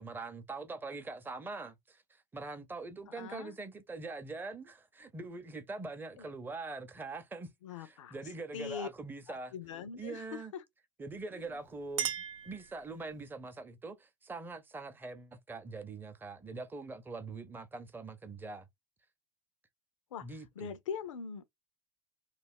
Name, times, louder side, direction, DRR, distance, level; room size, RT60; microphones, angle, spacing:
voice 1, 0.0-7.5 7.8-9.5 10.0-10.5 11.0-18.7 20.2-20.7, right 3 dB, 15° right, 0.5 m, -43 dB
voice 2, 3.1-3.5 6.2-6.3 7.6-8.2 8.5-8.9 9.3-10.6 11.3-11.6 20.1-21.5, left 7 dB, 90° left, 0.4 m, -42 dB
Chink clink, 11.4-13.3, right 10 dB, 90° right, 0.5 m, -39 dB
2.3 x 2.0 x 3.5 m
hypercardioid pair, 90°, 16 cm